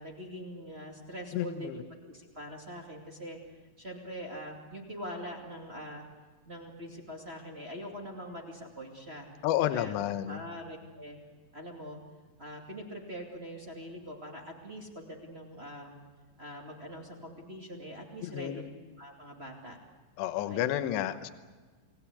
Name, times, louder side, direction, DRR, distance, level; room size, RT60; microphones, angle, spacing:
voice 1, 0.0-3.4 3.8-6.0 6.4-9.3 9.7-9.9 10.3-11.2 11.5-12.0 12.4-15.9 16.4-18.7 19.0-19.8 20.5-20.7, equal, 25° right, 1 dB, 1.4 m, -43 dB
voice 2, 1.3-1.7 9.4-10.4 18.2-18.7 20.2-21.3, left 12 dB, 80° left, 11 dB, 3.1 m, -31 dB
29.5 x 19.5 x 8.3 m, 1.3 s
omnidirectional pair, 5.2 m